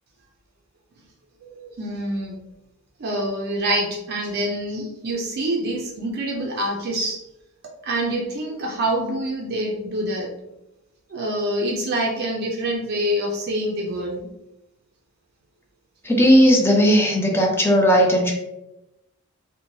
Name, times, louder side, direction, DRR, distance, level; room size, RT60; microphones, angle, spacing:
voice 1, 1.4-2.4 3.0-7.2 7.8-10.3 11.1-14.3, right 1 dB, 45° right, -1 dB, 0.4 m, -26 dB
voice 2, 16.0-18.3, equal, 10° left, 1 dB, 0.4 m, -16 dB
2.7 x 2.1 x 3.0 m, 0.91 s
head